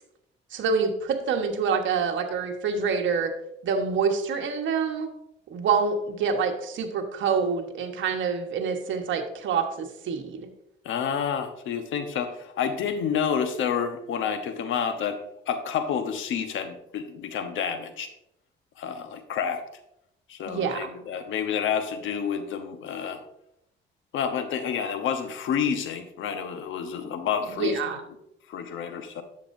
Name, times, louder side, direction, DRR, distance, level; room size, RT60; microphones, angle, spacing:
voice 1, 0.5-3.3 3.6-5.1 5.5-10.5 20.5-20.9 27.5-28.0, right 5 dB, 70° right, 3 dB, 1.3 m, -26 dB
voice 2, 10.8-15.2 15.5-18.1 18.8-19.6 20.3-23.2 24.1-27.8 28.5-29.2, left 7 dB, 80° left, 8 dB, 1.0 m, -29 dB
10.5 x 7.7 x 2.7 m, 0.79 s
cardioid pair, 90°, 20 cm